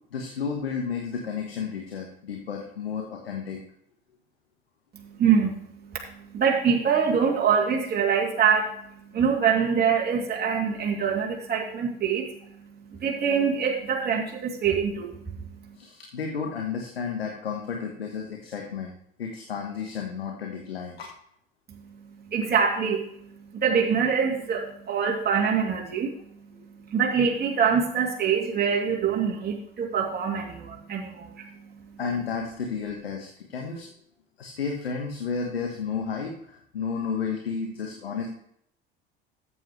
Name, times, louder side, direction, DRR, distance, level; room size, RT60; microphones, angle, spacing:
voice 1, 0.1-3.6 15.7-18.9 19.2-21.1 26.5-26.7 32.0-33.9 34.4-38.3, left 6 dB, 85° left, 1 dB, 1.3 m, -32 dB
voice 2, 4.9-15.8 21.7-32.0, right 6 dB, 35° right, -2 dB, 2.7 m, -25 dB
13.5 x 8.7 x 3.1 m, 0.70 s
hypercardioid pair, 65°, 29 cm